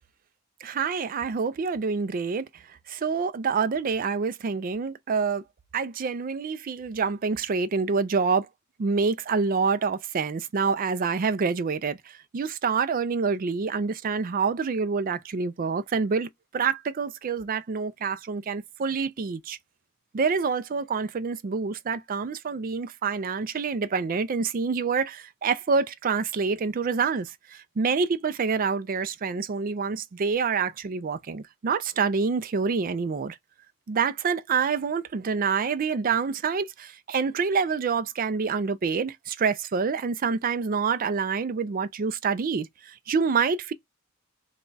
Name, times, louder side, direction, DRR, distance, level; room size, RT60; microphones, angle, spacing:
voice 1, 0.6-2.5 2.9-5.4 5.7-8.5 8.8-19.6 20.1-33.4 33.9-43.7, right 5 dB, 40° right, 0.4 m, -27 dB
3.3 x 2.3 x 3.9 m
head